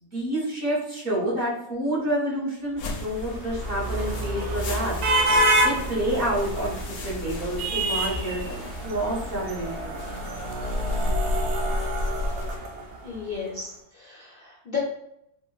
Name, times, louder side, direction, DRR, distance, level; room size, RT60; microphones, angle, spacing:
voice 1, 0.0-5.0 5.6-10.0, right 1 dB, 45° right, -7 dB, 1.1 m, -28 dB
sound 1, 2.8-12.6, left 2 dB, 80° left, 1.1 m, -33 dB
sound 2, 2.9-13.2, right 1 dB, 75° right, 0.5 m, -28 dB
voice 2, 13.0-14.8, left 5 dB, 55° left, -5 dB, 0.6 m, -35 dB
3.7 x 2.1 x 2.2 m, 0.77 s
omnidirectional pair, 1.6 m